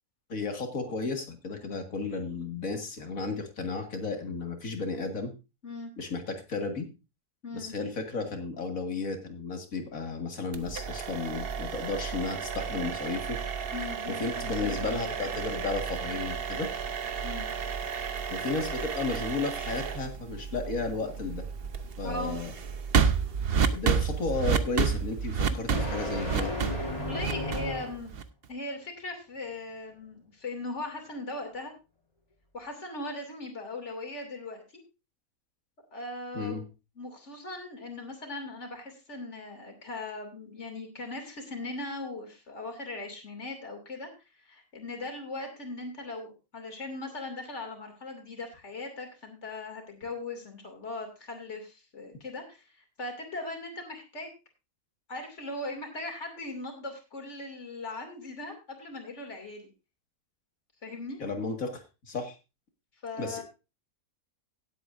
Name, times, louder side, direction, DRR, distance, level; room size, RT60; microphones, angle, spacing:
voice 1, 0.3-5.3 6.0-6.9 7.5-13.4 14.1-16.7 18.3-21.4 22.0-22.5 23.7-26.5 36.3-36.6 61.2-62.4 63.2-63.4, left 3 dB, 70° left, 5 dB, 2.4 m, -33 dB
voice 2, 7.4-7.7 13.7-15.5 17.2-17.5 22.0-22.4 25.7-25.8 27.0-28.1 28.5-31.7 32.5-34.6 35.9-36.7 37.0-44.1 44.4-54.3 55.1-59.7 60.8-61.2 63.0-63.4, left 2 dB, 55° left, 4 dB, 3.1 m, -39 dB
sound 1, 10.5-28.5, right 6 dB, 50° right, 1.0 m, -31 dB
sound 2, 21.2-28.1, left 1 dB, 25° left, 3.0 m, -37 dB
17.5 x 8.3 x 2.6 m, 0.28 s
omnidirectional pair, 1.5 m